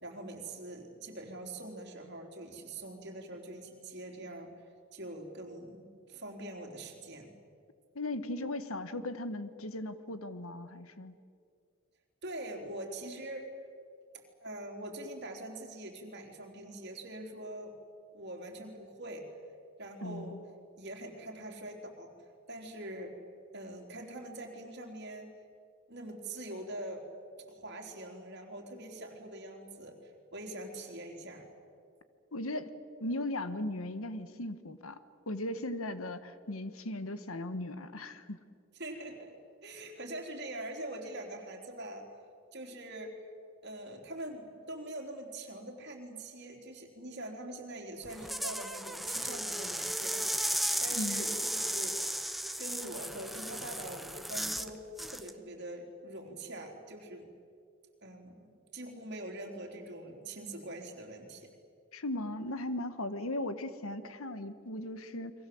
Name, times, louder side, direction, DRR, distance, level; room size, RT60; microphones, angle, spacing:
voice 1, 0.0-4.5 4.9-7.3 12.2-13.5 14.4-17.7 18.1-19.3 19.8-20.4 20.8-22.1 22.5-23.2 23.5-25.3 25.9-27.1 27.5-31.5 38.8-39.3 39.6-42.0 42.5-43.3 43.6-50.3 50.8-52.0 52.6-57.3 58.0-58.3 58.7-61.5, right 1 dB, 50° right, 2 dB, 3.9 m, -43 dB
voice 2, 7.9-11.1 20.0-20.4 32.3-32.7 33.0-38.4 51.0-51.4 61.9-65.3, left 1 dB, 80° left, 12 dB, 1.5 m, -37 dB
sound 1, 48.0-54.7 55.0-55.3, right 1 dB, ahead, 0.9 m, -35 dB
29.5 x 23.0 x 7.9 m, 2.3 s
head